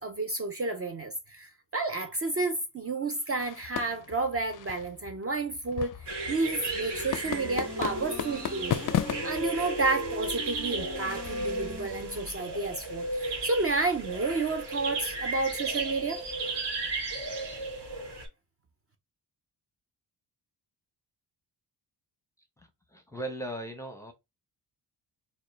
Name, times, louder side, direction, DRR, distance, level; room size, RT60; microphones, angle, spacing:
voice 1, 0.0-6.0 6.3-8.9 9.2-16.2, right 3 dB, 30° right, 0.5 m, -31 dB
sound 1, 3.4-12.0, left 10 dB, 45° left, 0.4 m, -37 dB
sound 2, 6.1-18.3, right 2 dB, 65° right, 1.7 m, -35 dB
Wind instrument woodwind instrument, 6.8-12.9, left 2 dB, 10° right, 1.3 m, -44 dB
voice 2, 22.9-24.1, right 1 dB, 5° left, 0.7 m, -37 dB
4.2 x 2.3 x 3.2 m
wide cardioid pair, 140°, 45 cm